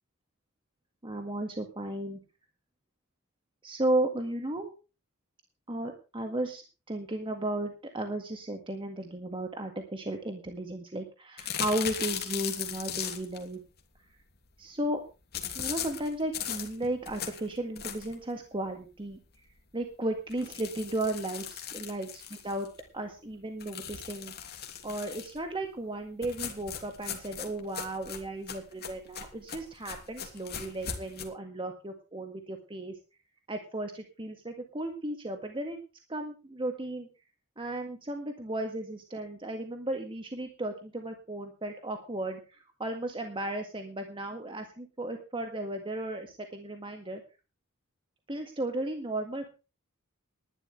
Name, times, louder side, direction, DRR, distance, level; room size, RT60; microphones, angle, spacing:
voice 1, 1.0-2.2 3.6-4.8 5.7-13.6 14.6-15.0 15.6-19.2 19.7-21.4 21.9-22.7 22.9-24.3 24.8-33.0 33.5-35.8 36.1-37.1 37.6-47.2 48.3-49.5, right 1 dB, 25° right, 4 dB, 1.8 m, -35 dB
sound 1, 11.4-13.4 15.3-18.2 18.7-18.8 19.1-19.2 19.5-19.6 20.3-22.8 23.6-25.4 26.2-31.2, left 8 dB, 50° left, 2.8 m, -38 dB
19.5 x 12.0 x 3.3 m, 0.32 s
head